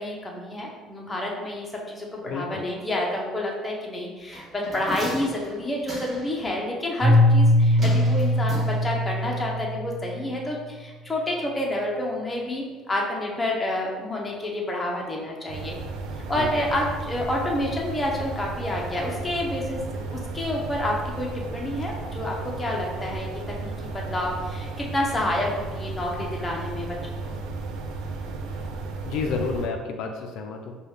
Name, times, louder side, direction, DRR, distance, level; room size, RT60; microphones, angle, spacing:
voice 1, 0.0-15.8 16.3-27.4, left 1 dB, 15° left, -2 dB, 0.7 m, -29 dB
voice 2, 2.2-2.6 16.3-16.5 29.0-30.8, left 4 dB, 75° left, 3 dB, 0.4 m, -30 dB
sound 1, 4.3-6.4 7.8-9.2 9.5-9.6, right 1 dB, 25° right, 1.2 m, -37 dB
Keyboard (musical), 7.0-10.1, left 1 dB, 40° right, 1.3 m, -20 dB
sound 2, 15.5-29.7, right 3 dB, 80° right, 0.4 m, -34 dB
4.9 x 2.3 x 3.2 m, 1.3 s
cardioid pair, 135°, 0 cm